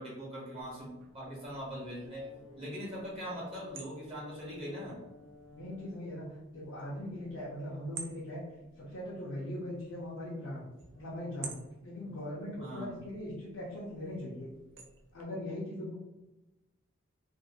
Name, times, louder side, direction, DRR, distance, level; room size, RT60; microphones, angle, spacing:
voice 1, 0.0-2.2 2.6-5.0 12.6-12.9, equal, 25° right, -6 dB, 0.8 m, -41 dB
sound 1, 0.6-15.2, right 5 dB, 60° right, 0.4 m, -53 dB
Brass instrument, 2.0-6.1, left 3 dB, 15° left, 0.4 m, -56 dB
voice 2, 5.5-6.2 6.5-8.4 8.8-14.5 15.1-15.9, left 1 dB, 80° left, -7 dB, 0.6 m, -40 dB
2.5 x 2.4 x 2.8 m, 1.0 s
head